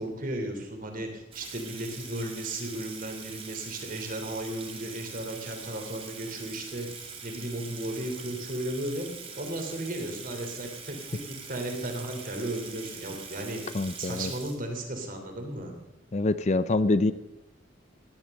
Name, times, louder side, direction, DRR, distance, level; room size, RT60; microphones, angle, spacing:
voice 1, 0.0-6.9 7.2-9.1 9.3-13.6 14.0-15.7, right 1 dB, 45° right, 4 dB, 3.1 m, -35 dB
Water tap faucet / Sink (filling or washing), 1.3-15.1, right 5 dB, 30° right, 2.1 m, -43 dB
voice 2, 13.7-14.3 16.1-17.1, left 2 dB, 35° left, 14 dB, 0.5 m, -25 dB
16.5 x 11.0 x 6.5 m, 0.96 s
head